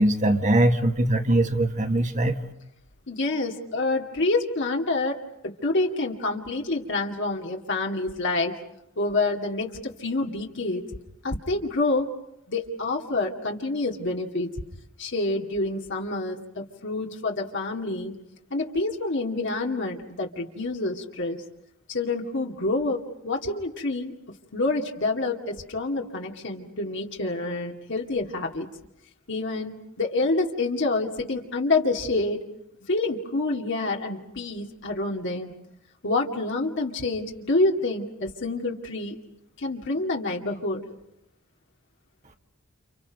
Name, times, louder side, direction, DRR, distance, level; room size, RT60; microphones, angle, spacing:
voice 1, 0.0-2.3, right 1 dB, 35° right, 5 dB, 1.8 m, -21 dB
voice 2, 3.1-8.6 9.0-10.8 11.2-12.1 12.5-14.5 15.0-18.1 18.5-21.4 21.9-24.1 24.5-28.7 29.3-32.4 32.8-35.5 36.0-39.2 39.6-40.8, left 2 dB, 60° left, 1 dB, 2.4 m, -27 dB
30.0 x 29.5 x 5.3 m, 0.81 s
head